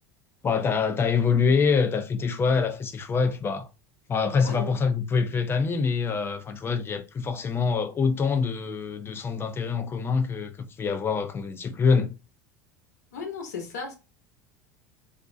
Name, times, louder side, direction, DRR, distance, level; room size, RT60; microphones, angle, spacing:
voice 1, 0.4-3.7 4.1-12.1, left 5 dB, 25° left, 0.5 m, -25 dB
voice 2, 4.4-4.7 13.1-13.9, left 5 dB, 90° left, 0.8 m, -35 dB
2.4 x 2.0 x 2.6 m
supercardioid pair, 95°, 9 cm